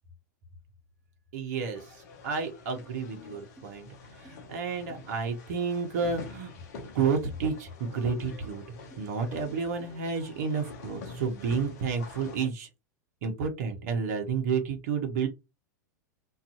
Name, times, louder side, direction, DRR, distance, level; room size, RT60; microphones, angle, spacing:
voice 1, 1.3-2.0 2.2-3.9 4.2-6.5 6.9-8.6 9.0-12.7 13.2-15.3, right 5 dB, 55° right, 4 dB, 0.8 m, -30 dB
sound 1, 1.7-12.5, left 4 dB, 55° left, 0.7 m, -47 dB
sound 2, 2.8-2.9 3.6-3.7 4.2-4.4 4.9-5.1 6.0-6.3 7.2-7.4 8.1-8.2 8.9-9.0 9.8-10.0, right 1 dB, ahead, 0.6 m, -53 dB
2.5 x 2.4 x 2.5 m, 0.24 s
figure-of-eight pair, 90°, 10 cm